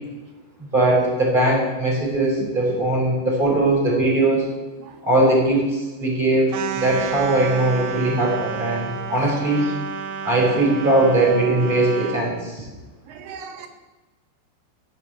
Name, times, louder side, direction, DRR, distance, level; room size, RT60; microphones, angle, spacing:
voice 1, 0.6-4.5 5.0-9.7 10.2-12.6, right 2 dB, 10° right, -2 dB, 5.2 m, -20 dB
voice 2, 2.4-2.8 3.5-3.6 4.8-5.0 6.8-7.2 13.1-13.7, right 8 dB, 90° right, 6 dB, 1.9 m, -36 dB
sound 1, 6.5-12.3, right 7 dB, 75° right, 2.2 m, -31 dB
15.0 x 8.2 x 8.1 m, 1.2 s
omnidirectional pair, 5.4 m